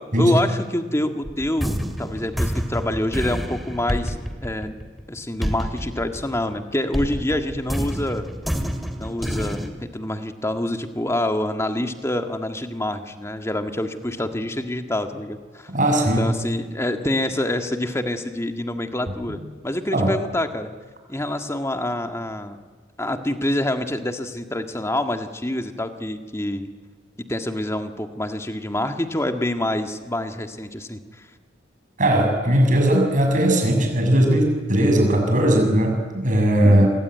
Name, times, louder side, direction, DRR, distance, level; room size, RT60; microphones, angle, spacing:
voice 1, 0.0-4.2 4.4-4.8 5.1-8.3 9.0-15.7 16.2-20.7 21.1-22.6 23.0-26.7 27.2-31.0 36.6-36.9, left 1 dB, 15° left, 6 dB, 1.8 m, -26 dB
sound 1, 1.2-6.6 6.9-9.7, equal, ahead, 2.7 m, -28 dB
voice 2, 15.7-16.3 19.3-19.4 19.9-20.1 32.0-36.9, right 1 dB, 45° right, 3 dB, 7.1 m, -18 dB
28.0 x 23.0 x 9.3 m, 1.4 s
head